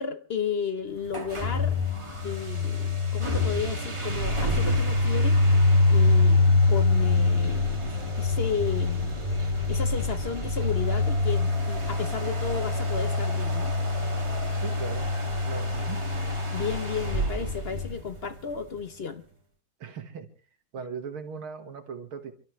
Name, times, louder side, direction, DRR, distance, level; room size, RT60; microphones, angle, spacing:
voice 1, 0.0-1.8 2.2-5.4 5.9-6.4 6.7-7.8 8.2-9.2 9.7-13.7 16.5-19.2, left 6 dB, 50° left, 10 dB, 0.7 m, -33 dB
sound 1, 1.1-18.6, left 2 dB, 15° right, 1.6 m, -25 dB
voice 2, 14.5-15.1 15.4-16.0 19.8-20.3 20.7-22.3, right 6 dB, 85° right, 7 dB, 2.5 m, -38 dB
29.0 x 13.0 x 3.2 m, 0.39 s
omnidirectional pair, 2.3 m